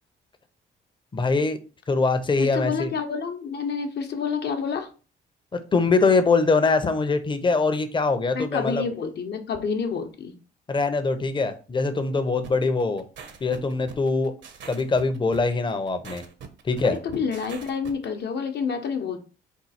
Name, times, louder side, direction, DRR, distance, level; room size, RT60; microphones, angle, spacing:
voice 1, 1.1-1.6 1.9-2.9 5.7-8.8 10.7-13.0 13.4-14.3 14.7-16.2 16.6-17.0, left 3 dB, 25° left, 0.7 m, -23 dB
voice 2, 2.4-4.9 8.3-10.3 16.8-19.2, left 6 dB, 60° left, 0.9 m, -28 dB
sound 1, 12.4-18.1, right 6 dB, 65° right, 0.8 m, -43 dB
4.5 x 2.3 x 4.2 m
cardioid pair, 90°, 20 cm